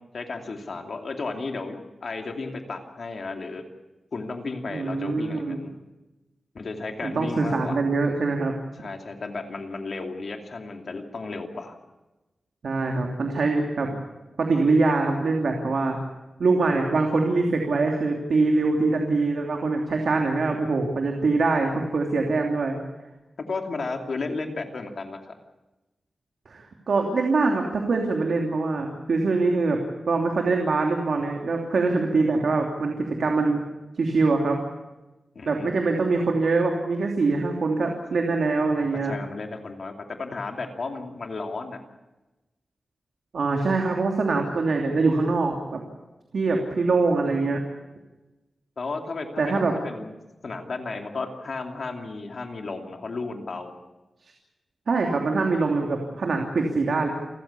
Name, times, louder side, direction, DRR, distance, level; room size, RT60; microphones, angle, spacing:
voice 1, 0.1-3.7 4.1-5.7 6.5-7.8 8.8-11.7 23.5-25.3 35.3-35.7 39.0-41.8 48.8-50.1 50.4-53.7, left 3 dB, 55° left, 3 dB, 2.6 m, -33 dB
voice 2, 4.7-5.6 7.0-8.5 12.6-13.9 14.4-16.0 16.4-22.8 26.5-29.8 30.1-33.6 34.0-34.6 35.5-39.1 43.3-45.8 46.3-47.6 49.4-49.7 54.9-57.1, right 3 dB, 65° right, 1 dB, 3.0 m, -23 dB
29.0 x 15.0 x 8.5 m, 1.1 s
wide cardioid pair, 160°, 0 cm